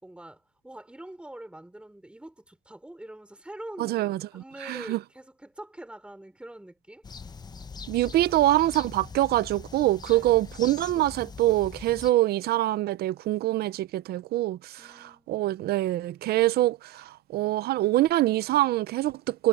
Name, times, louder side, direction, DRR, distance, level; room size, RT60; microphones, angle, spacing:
voice 1, 0.0-7.0 8.2-8.3 10.1-10.4 14.8-15.3, right 1 dB, 5° right, 5.1 m, -44 dB
voice 2, 3.8-5.0 7.9-19.5, right 15 dB, 70° right, 0.6 m, -25 dB
sound 1, 7.0-12.1, left 5 dB, 25° left, 1.0 m, -42 dB
cardioid pair, 110°, 17 cm